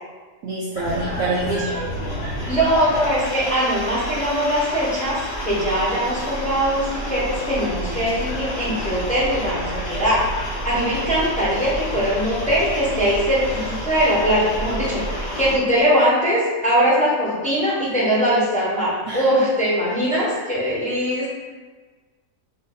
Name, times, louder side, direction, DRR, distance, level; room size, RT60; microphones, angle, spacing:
voice 1, 0.4-1.7 19.1-19.3, right 2 dB, 70° right, -5 dB, 0.8 m, -26 dB
sound 1, 0.7-15.6, equal, 45° left, 0.9 m, -29 dB
voice 2, 2.5-21.3, equal, 5° left, -8 dB, 0.8 m, -21 dB
4.1 x 2.6 x 3.9 m, 1.4 s
omnidirectional pair, 1.7 m